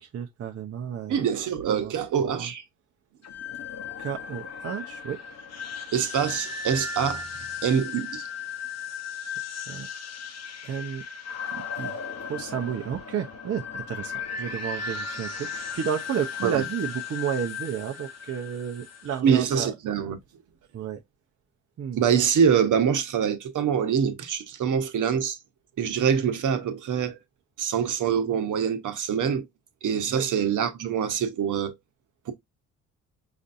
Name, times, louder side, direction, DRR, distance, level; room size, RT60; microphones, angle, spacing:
voice 1, 0.0-1.2 1.7-1.9 2.2-2.5 4.0-5.2 9.5-9.9 10.6-11.0 11.5-19.7 20.7-21.0 21.8-22.0 30.1-30.2, right 8 dB, 40° right, 0.7 m, -32 dB
voice 2, 1.1-2.6 5.9-7.3 7.6-8.3 16.4-16.6 19.2-20.2 21.9-25.4 25.8-27.2 27.6-29.4 29.8-31.7 32.3-32.4, right 7 dB, 55° right, 1.0 m, -25 dB
sound 1, 3.2-19.2, left 5 dB, 45° left, 1.0 m, -36 dB
5.1 x 2.6 x 2.5 m
supercardioid pair, 65°, 35 cm